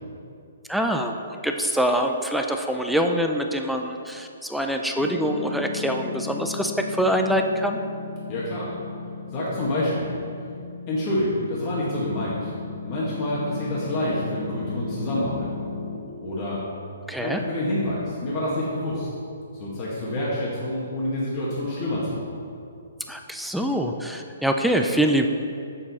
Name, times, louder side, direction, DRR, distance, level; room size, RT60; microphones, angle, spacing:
voice 1, 0.7-7.8 17.1-17.4 23.1-25.3, equal, ahead, 3 dB, 0.4 m, -24 dB
Piano, 5.0-16.0, left 4 dB, 85° left, 1.3 m, -36 dB
voice 2, 8.3-8.7 9.3-10.2 10.9-12.5 12.8-15.5 16.2-16.6 17.2-19.1 19.6-22.3, left 1 dB, 35° left, -7 dB, 1.6 m, -27 dB
7.2 x 6.9 x 4.2 m, 2.5 s
hypercardioid pair, 150°, 0 cm